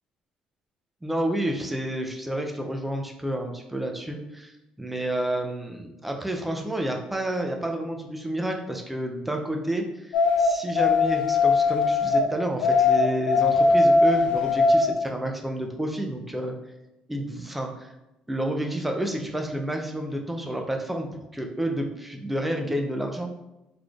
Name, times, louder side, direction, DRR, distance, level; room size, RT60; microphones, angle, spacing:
voice 1, 1.0-16.5 17.1-17.9 18.3-23.3, right 1 dB, 5° right, 2 dB, 0.3 m, -30 dB
sound 1, 10.1-12.3 12.6-14.9, left 3 dB, 90° left, 0.3 m, -20 dB
4.0 x 3.1 x 2.3 m, 0.93 s
cardioid pair, 180°, 2 cm